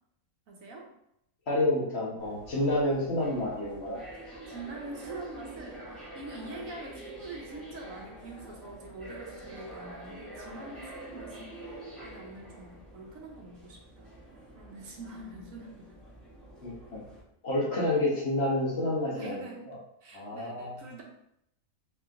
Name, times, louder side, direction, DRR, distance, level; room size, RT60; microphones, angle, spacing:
voice 1, 0.5-0.9 4.5-14.2 14.5-15.9 19.1-19.7 20.0-21.0, right 2 dB, 70° right, -1 dB, 1.2 m, -45 dB
voice 2, 1.5-4.0 16.6-17.0 17.4-19.8 20.1-20.8, left 1 dB, 50° left, -5 dB, 1.2 m, -29 dB
sound 1, 2.2-17.2, right 1 dB, ahead, 1.2 m, -46 dB
3.4 x 2.8 x 3.6 m, 0.77 s
omnidirectional pair, 1.5 m